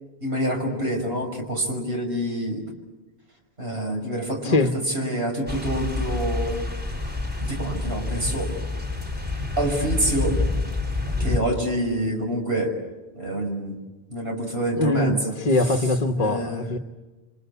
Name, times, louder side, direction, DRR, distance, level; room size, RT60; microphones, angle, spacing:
voice 1, 0.2-2.6 3.6-4.6 4.9-6.7 7.5-8.5 9.6-10.4 11.2-12.7 13.1-13.8 14.1-15.3 16.2-16.7, right 1 dB, 75° right, 5.6 m, -26 dB
voice 2, 4.4-4.8 14.8-16.8, left 2 dB, 40° left, 1.2 m, -22 dB
sound 1, 5.5-11.4, left 3 dB, 10° right, 4.4 m, -27 dB
29.0 x 25.0 x 8.3 m
omnidirectional pair, 1.0 m